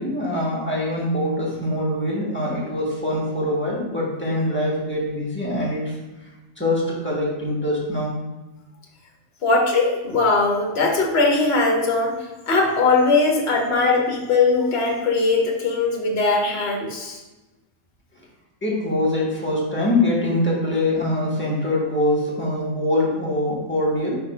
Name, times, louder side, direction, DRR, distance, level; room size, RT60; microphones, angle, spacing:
voice 1, 0.0-5.8 6.6-8.1 18.6-24.2, left 1 dB, 10° left, -5 dB, 1.6 m, -23 dB
voice 2, 9.4-12.1 12.5-17.2, left 3 dB, 55° left, 0 dB, 1.3 m, -20 dB
5.4 x 4.0 x 5.1 m, 1.1 s
omnidirectional pair, 1.3 m